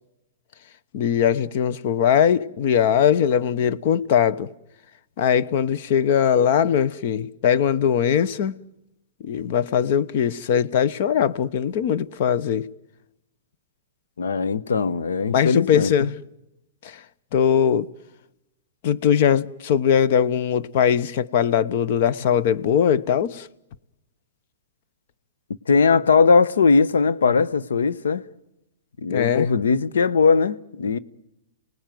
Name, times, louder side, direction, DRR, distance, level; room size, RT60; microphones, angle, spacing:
voice 1, 0.9-4.5 5.2-8.6 9.2-12.7 15.3-16.2 16.8-17.0 17.3-17.9 18.8-23.5 29.1-29.5, left 8 dB, 55° left, 1.0 m, -20 dB
voice 2, 14.2-16.1 25.7-28.2 29.0-31.0, left 5 dB, 90° left, 1.0 m, -19 dB
29.0 x 19.0 x 9.3 m
hypercardioid pair, 140°, 0 cm